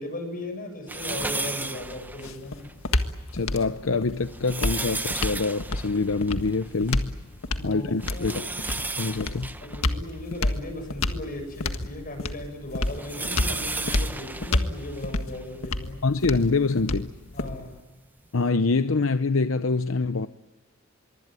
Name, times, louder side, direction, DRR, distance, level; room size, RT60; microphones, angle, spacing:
voice 1, 0.0-2.6 7.5-8.4 9.6-16.0 17.3-17.7, left 1 dB, 45° left, 6 dB, 7.6 m, -37 dB
sound 1, 0.9-2.7 3.2-3.3 4.1-7.1 7.4-7.5 8.0-11.0 11.6-15.5 16.2-16.3 17.6-17.7, right 2 dB, 10° right, 0.9 m, -34 dB
sound 2, 1.8-17.8, left 2 dB, 90° left, 1.7 m, -30 dB
voice 2, 3.3-7.1 7.6-8.4 9.0-9.5 16.0-17.1 18.3-20.3, left 3 dB, 70° left, 11 dB, 0.8 m, -25 dB
24.5 x 23.5 x 9.2 m, 1.2 s
head